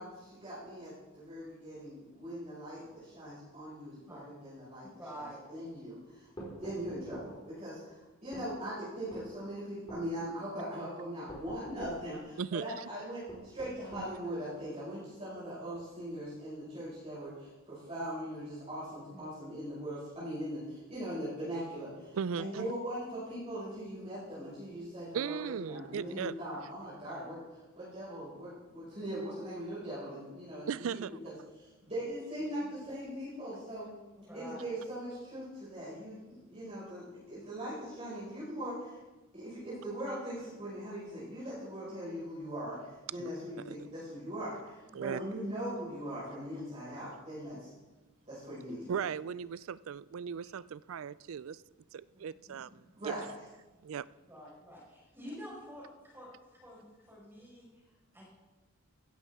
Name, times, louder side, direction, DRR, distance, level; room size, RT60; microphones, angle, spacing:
voice 1, 0.0-4.9 5.1-5.2 5.5-27.4 27.8-33.9 34.3-39.0 39.3-47.7 48.3-49.0 53.0-53.3, equal, 30° right, 5.4 m, -40 dB
voice 2, 5.0-5.5 8.3-8.4 19.1-19.3 27.0-27.2 34.1-34.7 47.5-47.6 48.2-48.4 52.5-52.6 54.3-58.3, equal, 10° right, 4.8 m, -49 dB
sound 1, 6.4-7.3 8.3-8.5 9.1-9.3 9.9-10.1 11.3-12.0 13.3-14.1, right 1 dB, 20° left, 4.7 m, -46 dB
voice 3, 12.4-12.9 14.0-14.1 22.1-22.7 25.1-26.3 30.7-31.1 43.2-43.3 43.6-43.8 44.9-45.2 48.9-51.6 52.2-52.7 53.0-53.2 53.8-54.0, right 7 dB, 75° right, 0.4 m, -37 dB
16.0 x 13.0 x 3.6 m
head